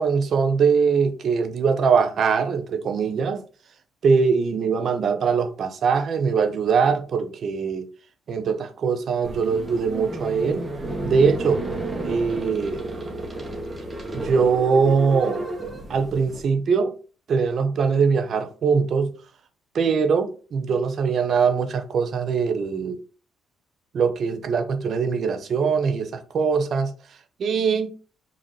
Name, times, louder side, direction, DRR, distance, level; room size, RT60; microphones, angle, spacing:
voice 1, 0.0-3.4 4.0-7.9 8.3-10.6 11.0-11.6 12.0-12.8 14.1-15.5 15.9-16.9 17.3-19.1 19.7-23.0 23.9-26.9 27.4-27.9, right 5 dB, 60° right, 0.7 m, -22 dB
sound 1, 9.2-16.4, right 2 dB, 30° right, 1.2 m, -32 dB
5.1 x 2.8 x 3.2 m
hypercardioid pair, 50°, 0 cm